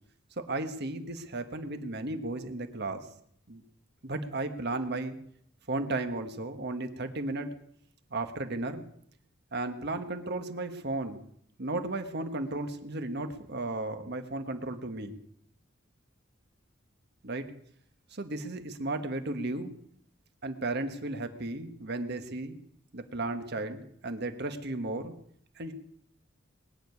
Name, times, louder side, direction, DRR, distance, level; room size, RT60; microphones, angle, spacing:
voice 1, 0.4-3.1 3.5-3.6 4.0-5.2 5.7-7.5 8.1-8.8 9.5-11.2 11.6-15.2 17.2-17.5 18.1-19.7 20.4-22.6 22.9-25.1 25.5-25.7, right 2 dB, 55° right, 7 dB, 1.5 m, -34 dB
20.5 x 7.0 x 9.6 m, 0.69 s
head